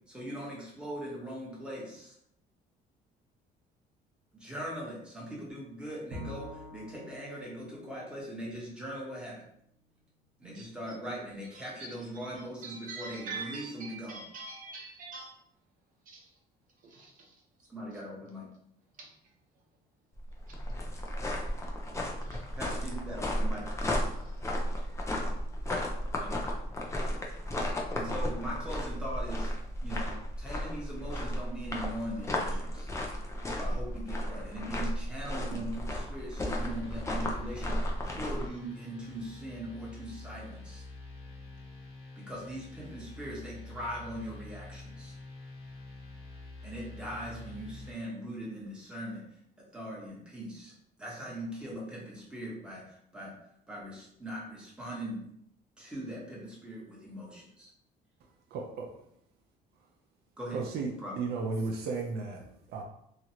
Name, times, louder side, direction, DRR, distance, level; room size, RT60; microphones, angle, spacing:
voice 1, 0.1-2.1 4.3-9.4 10.4-14.2 17.7-18.5 22.5-23.7 26.2-26.4 27.9-29.5 29.8-32.9 33.4-40.8 42.2-45.2 46.6-53.3 53.7-55.2 55.8-57.7 60.4-60.6 61.0-61.1, right 1 dB, 5° right, -5 dB, 1.2 m, -41 dB
Bowed string instrument, 6.1-9.4, left 1 dB, 85° right, 1.0 m, -47 dB
voice 2, 11.5-15.3 16.1-16.3 16.8-17.4 19.0-19.1 20.5-20.6 21.9-22.5 24.1-24.6, right 4 dB, 55° right, -1 dB, 0.9 m, -45 dB
sound 1, 20.1-38.5, equal, 15° left, 0.6 m, -34 dB
sound 2, 36.6-47.9, left 3 dB, 35° left, 1.0 m, -47 dB
voice 3, 58.5-58.9 60.5-60.9 61.2-62.8, right 4 dB, 70° right, 1 dB, 0.5 m, -34 dB
3.0 x 2.4 x 2.8 m, 0.72 s
cardioid pair, 110°, 17 cm